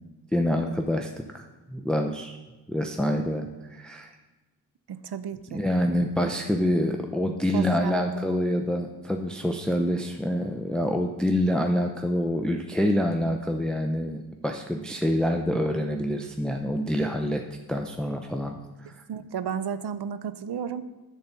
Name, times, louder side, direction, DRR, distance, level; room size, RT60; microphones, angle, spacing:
voice 1, 0.3-2.4 2.7-4.1 5.5-17.4 17.7-19.0, equal, ahead, 3 dB, 0.6 m, -26 dB
voice 2, 4.9-5.6 7.5-8.0 19.1-20.8, right 7 dB, 75° right, 13 dB, 0.7 m, -33 dB
10.0 x 4.2 x 7.1 m, 1.2 s
cardioid pair, 60°, 40 cm